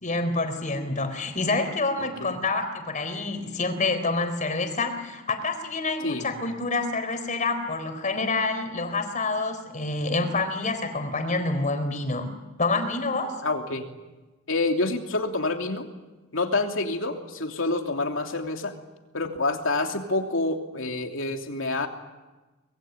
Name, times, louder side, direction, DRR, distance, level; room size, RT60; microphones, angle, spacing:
voice 1, 0.0-12.3 12.6-13.4, left 3 dB, 40° left, 8 dB, 4.1 m, -27 dB
voice 2, 2.0-2.4 6.0-6.3 13.4-13.9 14.5-15.9 16.3-18.7 19.1-21.9, left 2 dB, 75° left, 3 dB, 3.0 m, -27 dB
25.0 x 21.5 x 9.1 m, 1.1 s
head